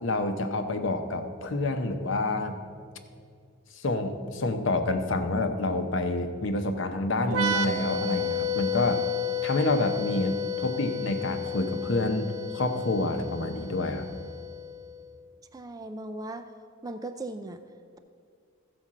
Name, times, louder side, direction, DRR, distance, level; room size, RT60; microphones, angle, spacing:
voice 1, 0.0-2.6 3.7-9.1 9.4-14.1, left 2 dB, 60° left, 7 dB, 0.8 m, -28 dB
sound 1, 7.3-14.8, left 5 dB, 85° right, 0.7 m, -31 dB
voice 2, 15.5-16.5 16.8-17.6, right 2 dB, 15° right, 8 dB, 0.4 m, -37 dB
14.0 x 5.1 x 7.4 m, 2.2 s
head